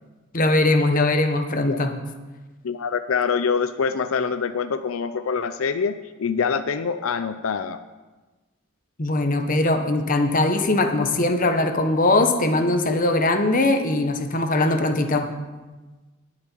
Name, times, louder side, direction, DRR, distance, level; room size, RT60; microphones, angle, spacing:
voice 1, 0.3-1.9 9.0-15.3, left 2 dB, 40° left, 6 dB, 1.2 m, -21 dB
voice 2, 2.6-7.8, left 6 dB, 90° left, 11 dB, 0.5 m, -25 dB
19.5 x 7.5 x 4.6 m, 1.2 s
head